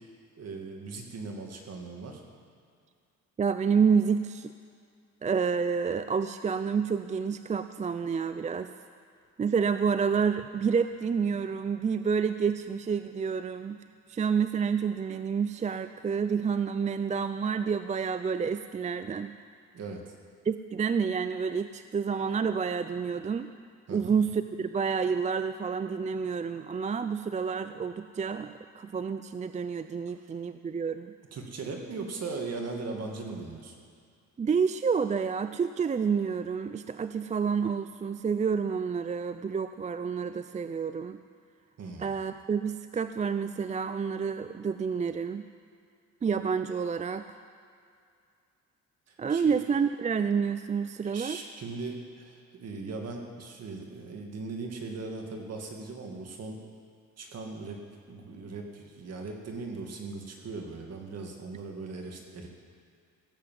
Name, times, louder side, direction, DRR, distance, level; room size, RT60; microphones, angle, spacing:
voice 1, 0.4-2.2 19.7-20.0 23.9-24.1 31.3-33.8 41.8-42.2 49.1-49.5 51.1-56.6 57.2-57.8 58.1-62.5, right 3 dB, 55° right, 2 dB, 2.2 m, -39 dB
voice 2, 3.4-4.5 5.2-8.7 9.4-13.8 14.1-19.3 20.4-23.5 23.9-31.1 34.4-41.2 42.0-45.5 46.2-47.3 49.2-51.4, right 6 dB, 25° right, 10 dB, 0.4 m, -29 dB
16.5 x 7.9 x 7.6 m, 2.3 s
cardioid pair, 90°, 30 cm